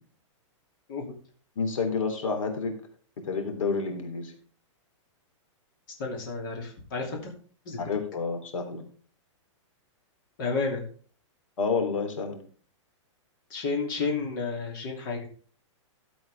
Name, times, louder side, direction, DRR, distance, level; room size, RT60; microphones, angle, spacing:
voice 1, 1.5-2.8 3.2-4.3 7.8-8.8 11.6-12.4, left 4 dB, 90° left, 5 dB, 3.3 m, -29 dB
voice 2, 6.0-7.3 7.7-7.8 10.4-10.8 13.5-15.3, left 4 dB, 40° left, 1 dB, 2.7 m, -31 dB
13.0 x 7.7 x 3.4 m, 0.42 s
supercardioid pair, 175°, 16 cm